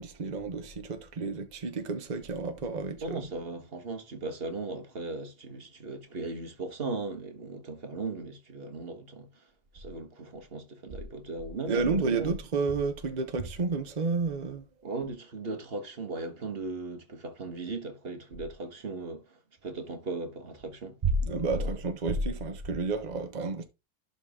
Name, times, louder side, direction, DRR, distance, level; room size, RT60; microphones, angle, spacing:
voice 1, 0.0-3.2 11.7-14.6 21.0-23.6, right 3 dB, 60° right, 0.4 m, -30 dB
voice 2, 3.0-9.5 9.7-12.3 14.8-21.0 21.6-21.7, right 3 dB, 35° right, 1.3 m, -37 dB
11.5 x 4.1 x 3.6 m
omnidirectional pair, 2.2 m